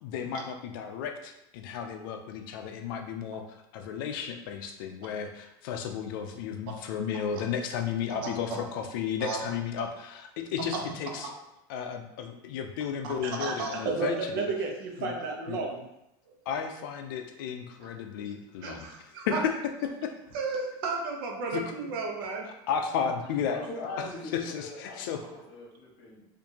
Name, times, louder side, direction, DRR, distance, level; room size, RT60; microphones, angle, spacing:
voice 1, 0.0-11.3 11.7-14.5 15.0-15.1 15.5-15.6 16.5-18.9 19.2-20.1 21.5-21.6 22.7-23.6 24.0-24.1 24.3-25.2, left 7 dB, 70° left, 5 dB, 0.4 m, -33 dB
voice 2, 8.1-8.6 9.2-9.4 10.6-10.8 11.2-11.3 13.0-15.8 18.6-19.4 20.3-22.5, right 4 dB, 75° right, 1 dB, 0.8 m, -33 dB
voice 3, 23.0-26.3, left 2 dB, 45° left, -3 dB, 1.3 m, -41 dB
4.4 x 2.6 x 2.8 m, 0.87 s
supercardioid pair, 175°, 12 cm